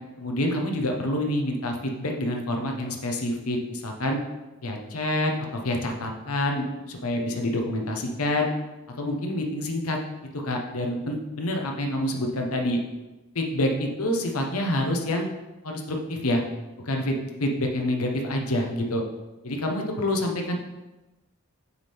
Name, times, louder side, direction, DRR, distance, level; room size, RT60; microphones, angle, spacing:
voice 1, 0.2-4.2 4.6-8.5 9.0-10.0 10.3-12.8 13.3-15.3 15.6-16.4 16.8-19.0 19.4-20.6, left 1 dB, 85° left, 2 dB, 1.0 m, -27 dB
6.6 x 3.6 x 4.3 m, 1.1 s
head